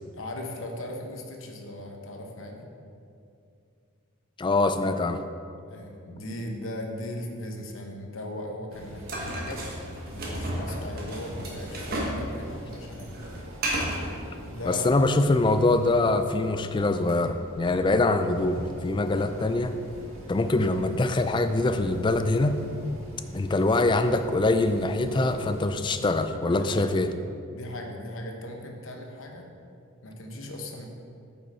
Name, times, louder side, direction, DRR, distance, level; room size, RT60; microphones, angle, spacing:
voice 1, 0.1-2.7 5.7-13.2 14.4-14.9 25.0-25.3 26.3-26.9 27.5-29.5 30.0-30.9, left 1 dB, 70° left, 2 dB, 1.0 m, -38 dB
voice 2, 4.4-5.2 14.6-19.7 20.3-22.6 23.3-27.1, left 2 dB, 20° left, 9 dB, 0.3 m, -24 dB
sound 1, 8.7-25.7, equal, 85° right, 1.6 m, -44 dB
sound 2, 9.1-12.2 12.5-14.1, right 1 dB, 45° right, 1.3 m, -32 dB
8.4 x 5.7 x 4.3 m, 2.5 s
head